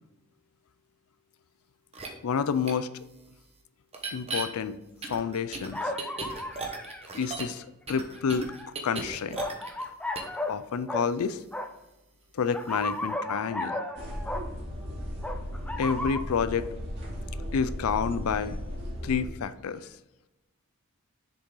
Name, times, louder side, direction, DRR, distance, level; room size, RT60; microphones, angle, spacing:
sound 1, 1.9-2.1 2.7-2.8 3.9-4.4 5.0-7.6 7.9-9.9 10.1-10.4, right 3 dB, 25° right, 0.9 m, -36 dB
voice 1, 2.2-2.9 4.1-4.8 5.1-5.8 7.1-8.5 8.8-9.4 10.5-11.4 12.3-13.8 15.8-16.7 17.5-18.6 19.0-19.9, left 6 dB, 70° left, 14 dB, 0.4 m, -29 dB
sound 2, 5.7-7.0 8.2-8.7 9.4-10.6 10.9-11.1 11.5-11.7 12.5-14.5 15.2-16.2, left 1 dB, 5° left, 0.4 m, -34 dB
sound 3, 14.0-19.3, equal, 50° right, 2.2 m, -36 dB
6.8 x 5.3 x 3.8 m, 1.0 s
head